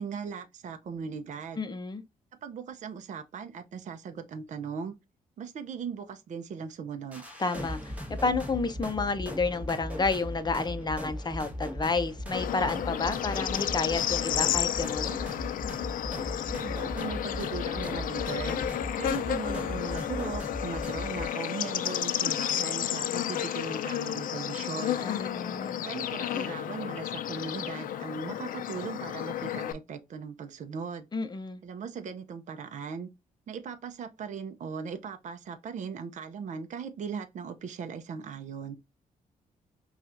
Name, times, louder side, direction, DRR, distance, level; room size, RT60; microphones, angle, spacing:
voice 1, 0.0-1.6 2.4-4.9 5.4-7.2 16.5-18.6 19.0-25.0 25.8-31.1 31.6-33.1 33.5-38.8, right 6 dB, 55° right, 0.6 m, -38 dB
voice 2, 1.6-2.0 7.4-7.9 8.2-15.2 25.0-25.9 31.1-31.6, left 4 dB, 30° left, 0.7 m, -30 dB
sound 1, 7.1-21.3, left 1 dB, 10° right, 1.4 m, -38 dB
Bird / Insect, 12.3-29.7, left 11 dB, 70° left, 0.4 m, -32 dB
5.5 x 2.4 x 2.5 m
cardioid pair, 80°, 15 cm